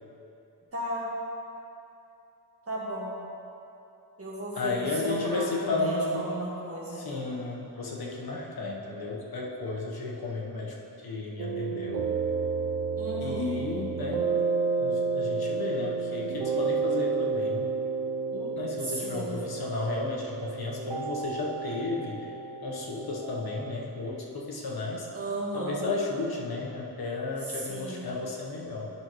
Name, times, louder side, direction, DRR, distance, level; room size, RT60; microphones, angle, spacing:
voice 1, 0.7-1.1 2.6-3.2 4.2-7.0 13.0-13.5 18.9-19.4 25.1-25.9 27.4-28.1, right 1 dB, 35° right, -5 dB, 1.5 m, -35 dB
voice 2, 4.5-6.3 6.9-10.8 11.0-12.1 13.2-14.3 14.8-17.7 18.3-22.3 22.6-25.1 25.5-28.9, left 3 dB, 65° left, -3 dB, 1.1 m, -33 dB
sound 1, 11.4-23.7, right 4 dB, 85° right, 0.6 m, -31 dB
11.0 x 6.1 x 3.0 m, 2.9 s
wide cardioid pair, 145°, 41 cm